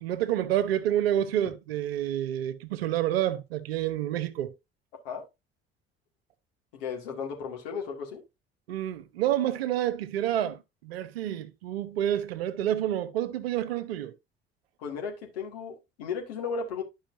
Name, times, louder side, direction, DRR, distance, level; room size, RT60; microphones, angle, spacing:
voice 1, 0.0-4.5 8.7-14.1, right 11 dB, 70° right, 0.8 m, -28 dB
voice 2, 6.7-8.2 14.8-16.8, left 5 dB, 65° left, 2.2 m, -35 dB
11.5 x 5.6 x 2.6 m
figure-of-eight pair, 55°, 31 cm